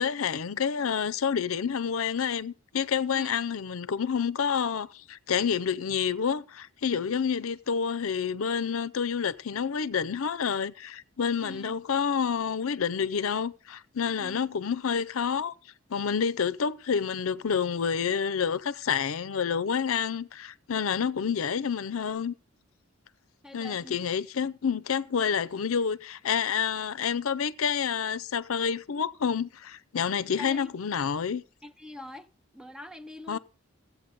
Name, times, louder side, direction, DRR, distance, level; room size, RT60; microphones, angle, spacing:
voice 1, 0.0-15.5 15.9-22.3 23.5-31.4 33.3-33.4, left 7 dB, 80° left, 0.5 m, -28 dB
voice 2, 11.4-11.8 14.2-14.5 23.4-24.0 30.4-30.7 31.6-32.3 32.5-33.4, left 1 dB, 5° right, 0.6 m, -44 dB
14.5 x 8.4 x 5.2 m
head